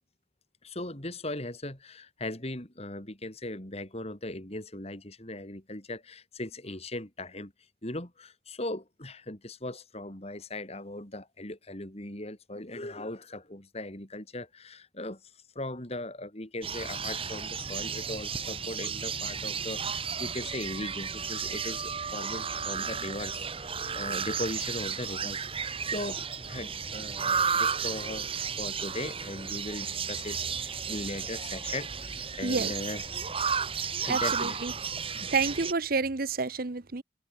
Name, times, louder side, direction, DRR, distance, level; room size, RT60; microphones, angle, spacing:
voice 1, 0.6-7.5 7.8-15.2 15.6-28.3 28.6-33.0 34.0-34.6 35.1-35.3, left 1 dB, 35° left, 3.8 m, -39 dB
sound 1, 16.6-35.7, right 6 dB, 30° right, 2.1 m, -33 dB
voice 2, 34.1-34.7 35.3-37.0, right 4 dB, 50° right, 0.9 m, -29 dB
head